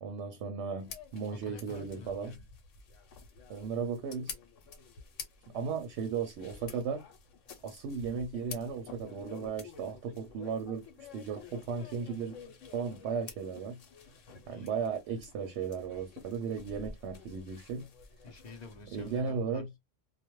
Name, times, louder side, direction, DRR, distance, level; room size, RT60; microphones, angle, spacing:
voice 1, 0.0-2.4 3.5-4.3 5.5-7.0 7.6-12.4 12.7-13.8 14.5-17.9 18.9-19.7, right 6 dB, 70° right, 0.8 m, -36 dB
sound 1, 0.8-19.2, left 5 dB, 80° left, 1.0 m, -50 dB
voice 2, 1.3-2.4 14.5-14.7 18.2-19.8, left 2 dB, 45° left, 0.6 m, -49 dB
2.3 x 2.1 x 2.9 m
omnidirectional pair, 1.3 m